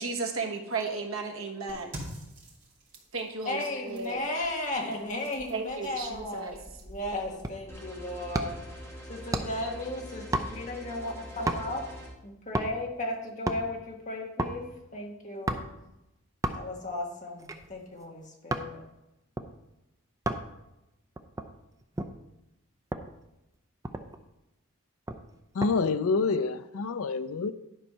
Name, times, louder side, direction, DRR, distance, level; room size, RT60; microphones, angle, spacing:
voice 1, 0.0-1.9 3.1-4.2 5.5-6.6, right 4 dB, 70° right, 2 dB, 1.3 m, -34 dB
sound 1, 1.7-7.5, equal, 35° right, 2.5 m, -47 dB
voice 2, 3.4-6.5 6.8-8.6 9.1-11.8 12.2-14.7 14.9-15.6 16.5-18.8, left 2 dB, 35° left, 0 dB, 1.4 m, -35 dB
sound 2, 7.4-7.8 8.3-8.7 9.3-9.7 10.3-10.8 11.5-11.9 12.5-12.9 13.3-13.7 14.4-14.6 15.5-15.8 16.4-16.8 17.4-18.7 19.4-19.5 20.3-20.5 21.2-22.2 22.9-23.1 23.5-23.6 23.8-24.3 25.1-25.8 26.1-26.4, right 1 dB, 15° right, 0.4 m, -33 dB
sound 3, 7.7-12.1, equal, 10° left, 2.1 m, -44 dB
voice 3, 25.5-27.5, left 4 dB, 70° left, 13 dB, 0.4 m, -27 dB
11.0 x 4.4 x 5.6 m, 0.93 s
head